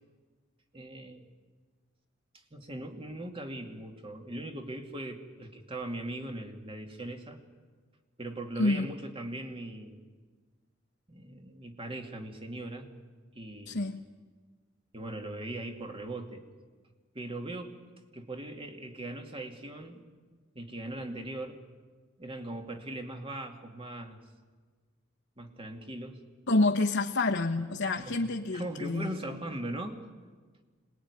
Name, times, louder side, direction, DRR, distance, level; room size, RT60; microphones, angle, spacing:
voice 1, 0.7-1.3 2.5-7.4 8.2-10.1 11.1-12.9 13.3-13.9 14.9-16.4 17.1-17.8 18.1-20.0 20.5-21.6 22.2-24.2 25.4-26.2 28.0-28.2 28.5-30.0, right 1 dB, 30° right, 4 dB, 2.5 m, -39 dB
voice 2, 8.6-8.9 13.7-14.0 26.5-29.2, left 2 dB, 65° left, 1 dB, 1.2 m, -28 dB
26.5 x 20.5 x 9.8 m, 1.5 s
head